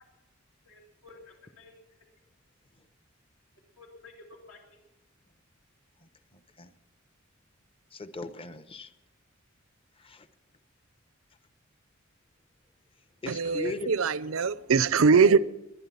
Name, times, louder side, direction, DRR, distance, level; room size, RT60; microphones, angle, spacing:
voice 1, 0.7-1.7 3.8-4.8, left 3 dB, 75° left, 2.5 m, -52 dB
voice 2, 6.0-6.7 7.9-8.9 10.0-10.3 13.2-13.9, left 3 dB, 25° left, 0.8 m, -39 dB
voice 3, 13.3-15.4, right 5 dB, 75° right, 0.6 m, -22 dB
21.0 x 11.5 x 5.7 m
head